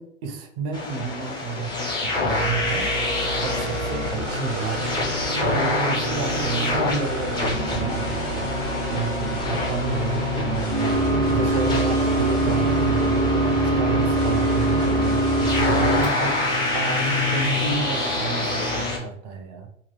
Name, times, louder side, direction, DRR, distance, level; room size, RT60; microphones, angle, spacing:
voice 1, 0.0-2.9 3.4-4.0 4.3-4.9 5.4-8.6 8.9-16.4 16.7-19.7, right 5 dB, 35° right, 5 dB, 0.5 m, -31 dB
sound 1, 0.7-19.0, left 3 dB, 10° left, 0.6 m, -28 dB
sound 2, 2.3-18.8, right 2 dB, 90° right, 0.7 m, -26 dB
sound 3, 3.4-17.7, left 2 dB, 80° left, 1.5 m, -32 dB
2.9 x 2.3 x 3.0 m, 0.70 s
figure-of-eight pair, 100°, 37 cm